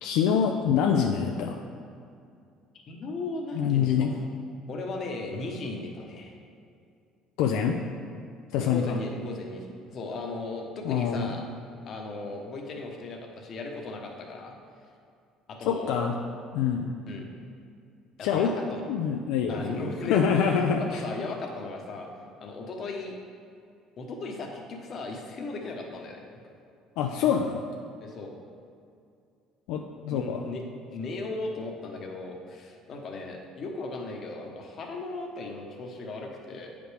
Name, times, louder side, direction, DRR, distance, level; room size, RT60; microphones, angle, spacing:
voice 1, 0.0-1.6 3.5-4.1 7.4-7.8 8.5-8.9 10.8-11.3 15.7-16.1 16.5-16.9 18.2-18.5 18.9-19.6 20.0-21.0 27.0-27.6 29.7-30.4, left 7 dB, 80° left, 2 dB, 0.4 m, -25 dB
voice 2, 2.9-4.1 4.7-6.4 8.6-11.4 11.8-14.5 15.5-16.1 17.1-17.3 18.2-18.9 19.5-20.5 20.8-22.1 22.4-23.1 24.0-26.2 28.0-28.3 30.1-30.6 30.9-36.7, left 2 dB, 45° left, 2 dB, 1.0 m, -36 dB
8.9 x 5.1 x 3.3 m, 2.4 s
cardioid pair, 115°, 0 cm